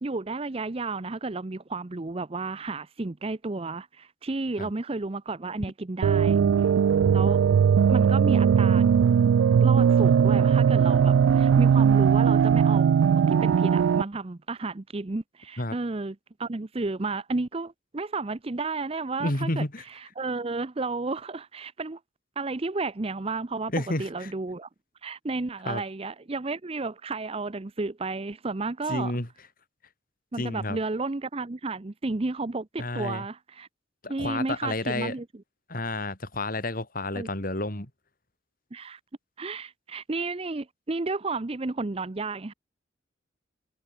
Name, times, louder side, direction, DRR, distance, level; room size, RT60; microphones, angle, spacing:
voice 1, 0.0-6.4 7.1-7.4 7.9-8.8 9.6-19.6 20.2-22.0 22.4-23.7 24.0-24.7 25.0-29.1 30.3-33.7 34.1-35.2 37.1-37.3 38.7-39.0 39.4-42.5, right 3 dB, 30° right, 0.6 m, -32 dB
sound 1, 6.0-14.0, right 7 dB, 85° right, 0.3 m, -19 dB
voice 2, 19.2-19.8 23.7-24.3 25.7-25.8 28.9-29.3 30.4-30.8 32.8-33.3 34.0-35.2 35.7-37.9, left 2 dB, 45° left, 3.6 m, -30 dB
head